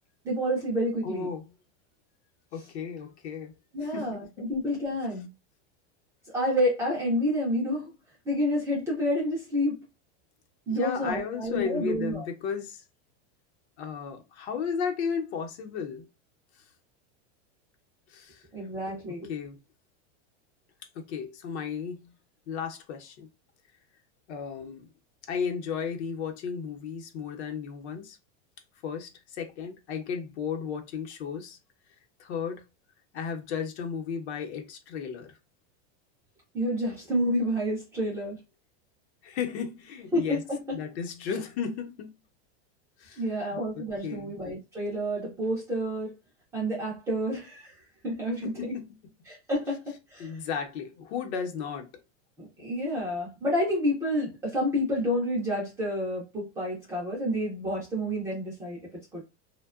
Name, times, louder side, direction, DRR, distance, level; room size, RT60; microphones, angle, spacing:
voice 1, 0.2-1.3 3.7-5.3 6.3-7.9 8.3-9.8 10.7-12.2 18.5-19.3 36.5-38.4 40.1-40.4 43.2-46.1 46.5-47.7 48.0-48.7 49.3-50.3 52.4-59.2, equal, 10° right, 0.3 m, -29 dB
voice 2, 1.0-1.5 2.5-3.5 3.8-4.5 10.7-12.8 13.8-16.1 18.1-18.5 19.3-19.6 20.9-22.1 22.5-23.3 24.3-24.9 25.3-28.2 28.8-31.6 32.2-32.6 33.1-35.3 39.2-40.4 40.7-42.1 43.0-44.3 48.4-48.9 50.2-51.9, left 6 dB, 75° left, 0.8 m, -34 dB
2.7 x 2.1 x 2.3 m
supercardioid pair, 170°, 33 cm